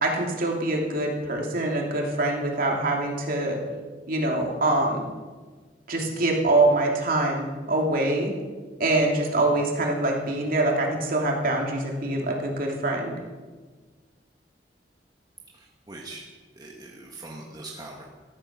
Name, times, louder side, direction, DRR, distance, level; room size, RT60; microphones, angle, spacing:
voice 1, 0.0-3.6 4.1-5.0 5.9-8.3 8.8-13.1, right 2 dB, 55° right, 0 dB, 2.9 m, -24 dB
voice 2, 15.5-16.2 16.6-18.1, right 2 dB, 25° right, -1 dB, 1.6 m, -42 dB
13.5 x 13.5 x 6.1 m, 1.4 s
head